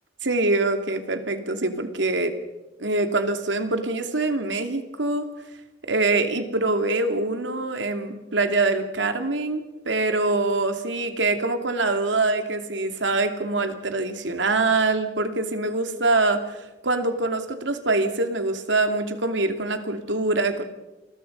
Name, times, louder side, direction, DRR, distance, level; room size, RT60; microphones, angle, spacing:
voice 1, 0.2-2.3 2.8-5.3 5.8-16.6 16.8-20.6, right 2 dB, 85° right, 6 dB, 2.7 m, -24 dB
28.5 x 21.5 x 5.5 m, 1.0 s
head